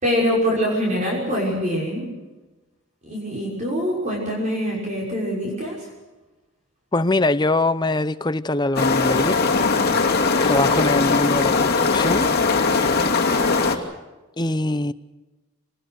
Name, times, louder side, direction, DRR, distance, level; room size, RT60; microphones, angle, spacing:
voice 1, 0.0-2.1 3.0-5.9, equal, 35° right, 6.2 m, -24 dB
voice 2, 6.9-9.4 10.4-12.3 14.4-14.9, left 2 dB, 20° left, 0.7 m, -22 dB
sound 1, 8.8-13.8, left 4 dB, 45° left, 2.6 m, -20 dB
26.5 x 20.0 x 6.6 m
head